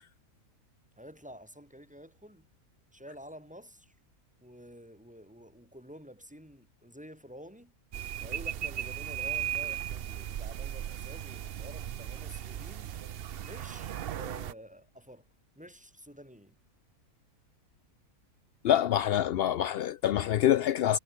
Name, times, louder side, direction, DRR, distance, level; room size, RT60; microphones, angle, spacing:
voice 1, 1.0-2.5 2.9-4.0 4.4-7.7 8.2-13.1 13.4-15.3 15.6-16.6, equal, 5° right, 3.7 m, -50 dB
sound 1, 7.9-14.5, right 10 dB, 60° right, 0.6 m, -37 dB
voice 2, 18.6-21.0, left 11 dB, 75° left, 0.5 m, -26 dB
omnidirectional pair, 1.6 m